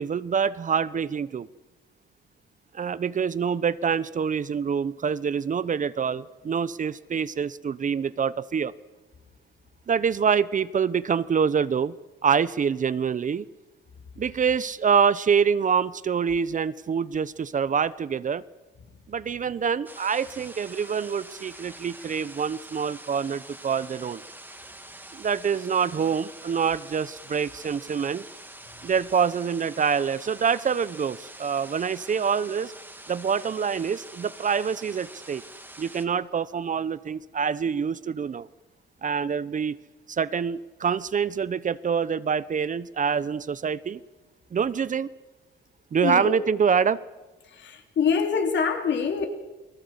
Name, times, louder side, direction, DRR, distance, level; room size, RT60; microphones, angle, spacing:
voice 1, 0.0-1.5 2.7-8.7 9.9-11.9 12.2-13.5 14.2-18.4 19.1-24.2 25.1-28.2 28.8-32.7 33.1-35.4 35.8-38.5 39.0-39.8 40.1-44.0 44.5-45.1 45.9-47.0, right 6 dB, 40° right, 17 dB, 0.8 m, -26 dB
sound 1, 19.9-36.1, right 1 dB, 10° right, 2.6 m, -45 dB
voice 2, 46.0-46.3 47.4-49.3, left 6 dB, 65° left, 4 dB, 3.9 m, -25 dB
29.0 x 20.0 x 8.2 m, 1.2 s
cardioid pair, 90°, 20 cm